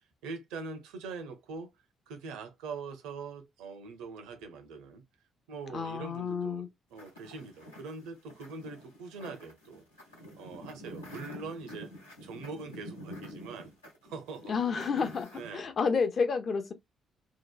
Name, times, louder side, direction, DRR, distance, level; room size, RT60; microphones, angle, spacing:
voice 1, 0.0-5.0 5.5-9.8 10.4-11.9 12.2-13.7 14.0-14.6 15.3-15.7, right 4 dB, 70° right, 0.6 m, -43 dB
voice 2, 5.7-6.7 14.5-16.7, left 5 dB, 50° left, 0.5 m, -30 dB
sound 1, 7.0-15.6, equal, 90° left, 0.7 m, -48 dB
2.8 x 2.1 x 2.3 m
figure-of-eight pair, 40°, 0 cm